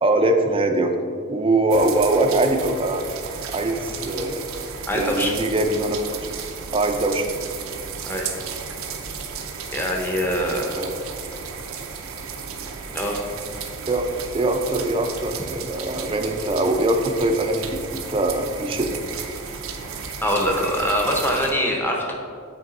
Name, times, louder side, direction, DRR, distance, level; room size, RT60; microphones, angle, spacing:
voice 1, 0.0-0.9 1.3-3.0 3.5-4.4 4.9-6.0 6.7-7.3 10.7-11.0 13.9-14.1 14.3-19.0, right 2 dB, 25° right, 5 dB, 0.4 m, -22 dB
sound 1, 1.7-21.5, right 5 dB, 75° right, 0.6 m, -34 dB
voice 2, 4.9-5.3 8.1-8.3 9.7-10.7 12.9-13.2 20.2-22.1, equal, 10° left, -1 dB, 0.7 m, -23 dB
7.9 x 3.4 x 4.0 m, 2.2 s
head